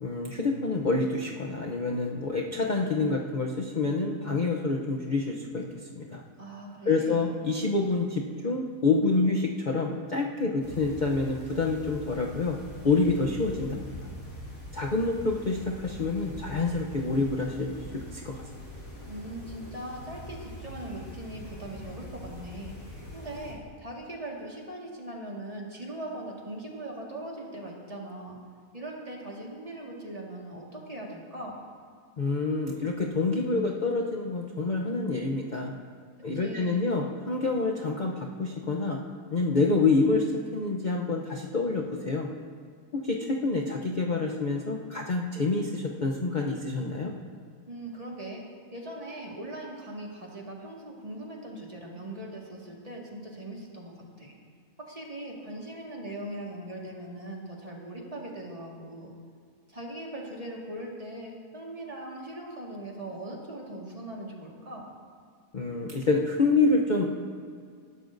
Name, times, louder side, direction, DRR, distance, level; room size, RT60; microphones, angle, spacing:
voice 1, 0.0-5.7 6.0-6.2 6.9-12.6 12.8-13.9 14.7-18.4 32.2-35.7 36.2-39.0 39.3-42.3 42.9-47.1 65.5-67.1, left 3 dB, 40° left, 0 dB, 0.7 m, -27 dB
voice 2, 6.4-7.4 19.1-22.8 23.1-28.4 28.7-31.6 36.2-37.0 47.7-48.4 48.7-54.4 54.8-59.1 59.7-64.9, right 1 dB, 25° right, -2 dB, 1.8 m, -40 dB
sound 1, 10.6-23.5, left 1 dB, 65° left, 3.0 m, -43 dB
19.0 x 12.5 x 2.6 m, 2.2 s
omnidirectional pair, 1.5 m